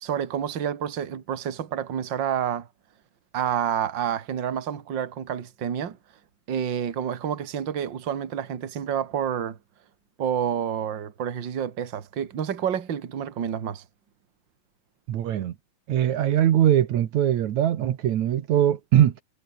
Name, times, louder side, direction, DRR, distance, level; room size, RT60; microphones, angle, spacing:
voice 1, 0.0-2.7 3.3-6.0 6.5-9.6 10.2-13.8, right 9 dB, 40° right, 2.4 m, -29 dB
voice 2, 15.1-15.6 15.9-19.2, right 11 dB, 75° right, 2.7 m, -21 dB
omnidirectional pair, 3.4 m